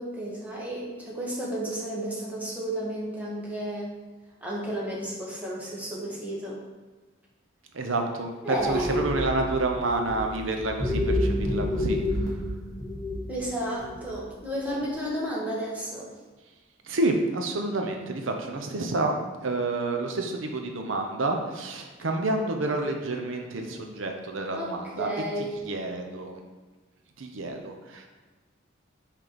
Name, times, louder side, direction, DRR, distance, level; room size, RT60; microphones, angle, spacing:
voice 1, 0.0-3.9 4.4-6.6 8.4-8.9 13.3-16.1 24.5-25.5, right 1 dB, 10° right, -6 dB, 1.6 m, -32 dB
voice 2, 7.7-12.4 16.8-19.1 19.4-25.1 25.4-26.4 27.2-28.1, right 2 dB, 80° right, 3 dB, 0.8 m, -29 dB
sound 1, 8.6-14.2 14.6-14.9, left 1 dB, 20° left, 1.6 m, -29 dB
5.9 x 4.6 x 5.2 m, 1.3 s
head